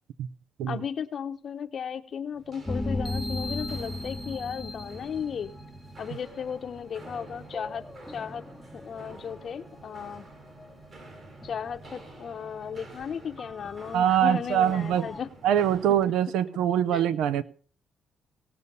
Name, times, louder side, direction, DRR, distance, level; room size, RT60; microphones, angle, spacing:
voice 1, 0.7-5.5 6.0-8.4 8.7-10.3 11.4-15.3 15.9-16.0 16.9-17.0, left 7 dB, 55° left, 9 dB, 0.8 m, -35 dB
Walk footsteps, 2.3-16.1, right 3 dB, 50° right, 4.4 m, -49 dB
sound 1, 2.7-6.6 7.0-10.2 10.6-10.7 11.2-12.2 12.5-12.7 13.4-15.2, left 2 dB, 10° left, 0.7 m, -37 dB
voice 2, 13.9-15.0 15.4-17.4, right 10 dB, 90° right, 16 dB, 0.6 m, -23 dB
18.0 x 6.9 x 5.4 m, 0.42 s
cardioid pair, 90°, 0 cm